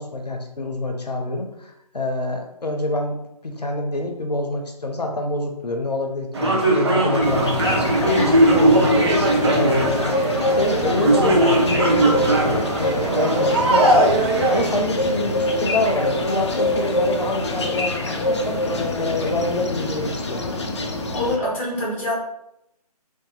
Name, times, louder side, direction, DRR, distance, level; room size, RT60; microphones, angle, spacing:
voice 1, 0.0-3.2 3.4-8.9 9.5-10.2 10.6-14.1 14.5-18.6 19.0-20.4, left 2 dB, 80° left, 3 dB, 0.7 m, -26 dB
sound 1, 6.3-14.8, right 1 dB, 40° right, 0.7 m, -19 dB
sound 2, 7.2-21.4, left 1 dB, 45° left, 0.5 m, -25 dB
voice 2, 21.1-22.2, left 1 dB, 20° left, -3 dB, 0.9 m, -24 dB
2.7 x 2.6 x 3.8 m, 0.82 s
figure-of-eight pair, 145°, 21 cm